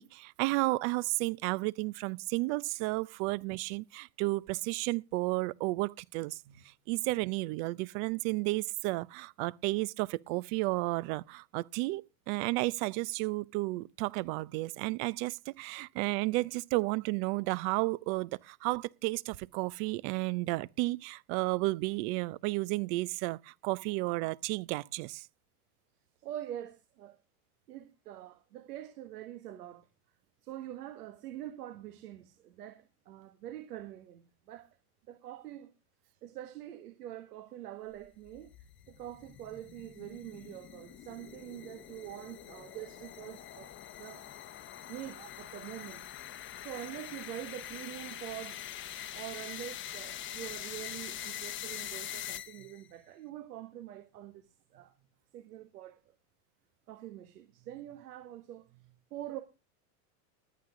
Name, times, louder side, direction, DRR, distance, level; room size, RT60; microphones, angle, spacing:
voice 1, 0.0-6.4 6.9-25.3, right 22 dB, 50° right, 0.7 m, -32 dB
voice 2, 26.2-27.2 27.7-29.9 30.4-34.7 35.1-35.7 36.2-38.5 38.9-46.1 46.6-54.9 55.3-56.0 56.9-59.4, right 13 dB, 85° right, 1.9 m, -45 dB
sound 1, 38.1-52.9, left 11 dB, 25° left, 0.9 m, -44 dB
20.0 x 8.7 x 3.7 m
supercardioid pair, 135°, 46 cm